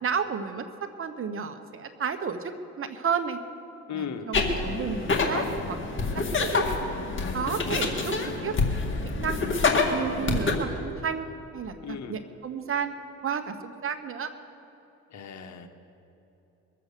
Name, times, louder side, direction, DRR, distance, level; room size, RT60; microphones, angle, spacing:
voice 1, 0.0-3.4 3.9-6.7 7.3-8.1 8.4-8.6 9.0-9.4 9.9-12.9 13.2-14.3, right 6 dB, 45° right, 9 dB, 1.0 m, -32 dB
voice 2, 3.9-4.3 11.8-12.1 15.1-15.7, left 7 dB, 65° left, 7 dB, 1.3 m, -36 dB
sound 1, 4.3-10.5, left 3 dB, 40° left, 2.0 m, -27 dB
22.5 x 7.7 x 6.7 m, 3.0 s
cardioid pair, 90°, 30 cm